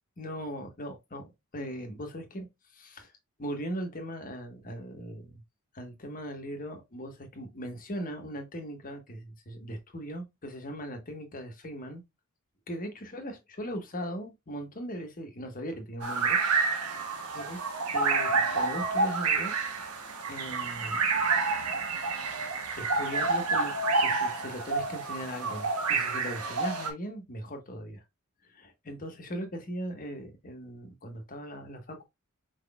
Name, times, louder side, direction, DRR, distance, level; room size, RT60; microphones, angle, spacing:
voice 1, 0.2-2.5 2.7-3.1 3.4-5.4 5.7-12.0 12.7-16.4 17.3-17.6 17.9-19.5 20.3-21.0 22.8-23.7 24.0-28.0 28.5-32.0, equal, 40° left, 1.3 m, -39 dB
sound 1, 16.0-26.9, right 4 dB, 85° right, 1.1 m, -29 dB
4.8 x 4.0 x 2.3 m
head